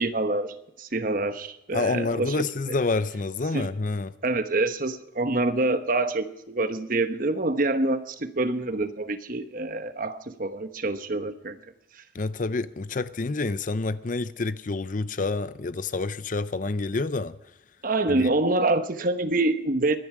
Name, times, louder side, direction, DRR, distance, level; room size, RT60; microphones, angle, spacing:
voice 1, 0.0-2.4 3.5-3.7 4.2-11.6 17.8-20.0, right 2 dB, 45° right, 1.1 m, -26 dB
voice 2, 1.7-4.1 12.1-17.4 18.1-18.3, left 3 dB, 45° left, 0.6 m, -28 dB
24.0 x 11.0 x 4.9 m
head